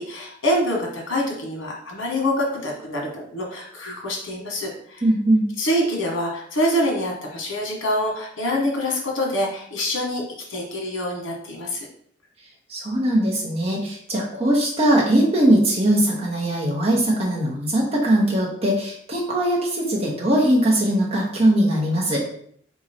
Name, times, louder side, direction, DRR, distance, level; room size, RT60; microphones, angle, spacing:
voice 1, 0.0-5.0 5.6-10.2 10.5-11.9, left 1 dB, 80° left, 0 dB, 1.3 m, -25 dB
voice 2, 5.0-5.4 12.7-22.2, right 1 dB, 30° right, -4 dB, 1.0 m, -20 dB
3.6 x 3.0 x 4.2 m, 0.65 s
head